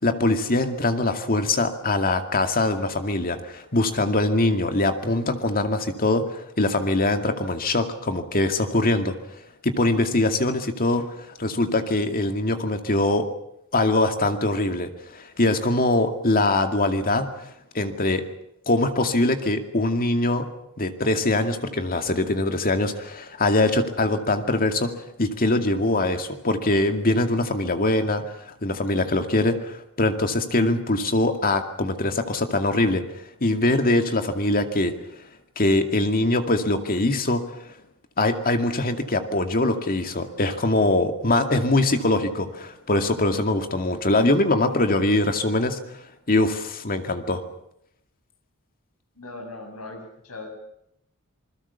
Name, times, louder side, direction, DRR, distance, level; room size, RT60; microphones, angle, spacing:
voice 1, 0.0-9.2 9.6-13.2 13.7-18.2 18.7-20.5 20.8-24.9 25.2-33.0 33.4-35.0 35.6-37.6 38.2-45.8 46.3-47.4, left 2 dB, 40° left, 7 dB, 2.3 m, -23 dB
voice 2, 49.2-50.5, left 2 dB, 80° left, 4 dB, 7.5 m, -39 dB
27.5 x 21.0 x 7.0 m, 0.76 s
head